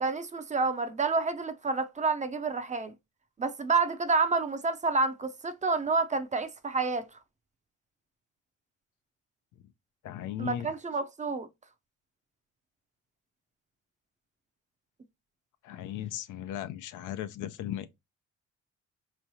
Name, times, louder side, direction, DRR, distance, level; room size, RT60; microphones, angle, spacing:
voice 1, 0.0-2.9 3.4-7.1 10.4-11.5, right 4 dB, 25° right, 0.5 m, -29 dB
voice 2, 10.0-10.7 15.6-17.9, left 11 dB, 80° left, 0.6 m, -36 dB
4.5 x 3.1 x 2.7 m
cardioid pair, 90°, 30 cm